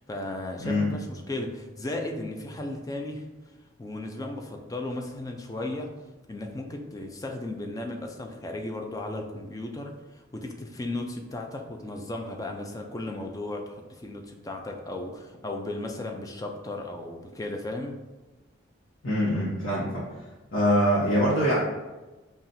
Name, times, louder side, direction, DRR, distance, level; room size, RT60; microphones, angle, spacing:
voice 1, 0.0-3.3 3.8-6.0 6.3-18.0, left 2 dB, 15° left, 3 dB, 0.3 m, -35 dB
voice 2, 0.6-1.0 19.0-20.0 20.5-21.6, equal, 90° left, -8 dB, 1.0 m, -24 dB
5.6 x 2.4 x 2.6 m, 1.1 s
head